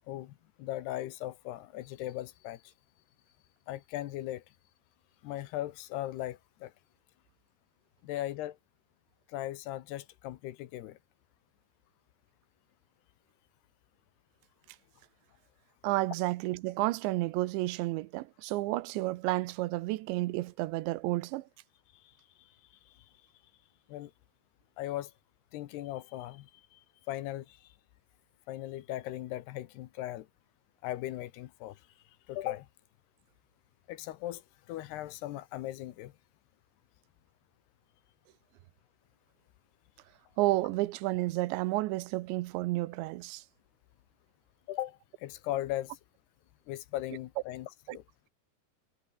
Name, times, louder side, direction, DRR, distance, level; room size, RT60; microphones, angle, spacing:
voice 1, 0.6-2.6 3.7-4.4 5.2-6.7 8.0-8.6 9.3-11.0 23.9-24.1 24.8-25.1 25.5-26.8 27.1-27.6 28.5-30.3 30.8-31.8 32.3-32.7 33.9-34.4 34.7-36.1 44.7-46.0 46.7-48.0, left 14 dB, 75° left, 3.0 m, -38 dB
voice 2, 15.8-21.4 40.4-43.4 47.9-48.0, right 19 dB, 85° right, 3.1 m, -31 dB
omnidirectional pair, 5.1 m